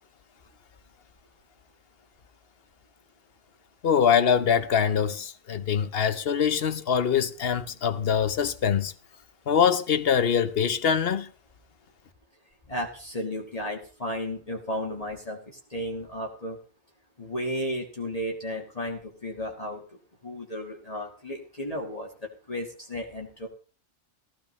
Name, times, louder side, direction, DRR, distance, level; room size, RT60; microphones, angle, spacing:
voice 1, 3.8-8.9 9.5-11.3, left 7 dB, 60° left, 1.0 m, -23 dB
voice 2, 12.7-15.4 15.7-16.6 17.2-19.8 20.2-22.1 22.5-23.5, equal, 30° left, 1.8 m, -33 dB
15.5 x 14.5 x 3.1 m
omnidirectional pair, 1.2 m